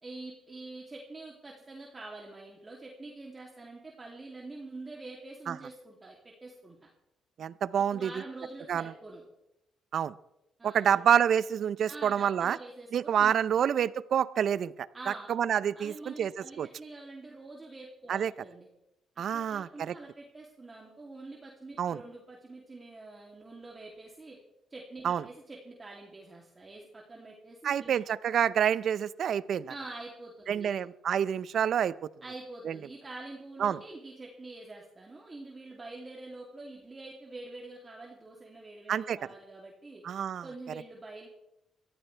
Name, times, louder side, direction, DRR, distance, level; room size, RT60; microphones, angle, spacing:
voice 1, 0.0-6.9 7.9-9.2 10.6-10.8 11.9-13.3 14.9-15.3 15.7-18.7 19.3-24.4 24.7-28.0 29.7-30.8 32.2-40.0 40.4-41.3, right 2 dB, 25° right, -2 dB, 2.8 m, -46 dB
voice 2, 7.4-8.1 8.7-8.9 9.9-10.1 10.6-12.6 12.9-14.9 15.3-16.3 16.6-16.7 18.1-18.3 19.2-19.9 21.8-22.0 25.0-25.2 27.6-29.7 30.5-32.1 32.6-32.8 33.6-33.8 38.9-39.2 40.0-40.4, right 8 dB, 65° right, 18 dB, 0.6 m, -27 dB
22.5 x 14.5 x 3.4 m, 0.86 s
cardioid pair, 90°, 0 cm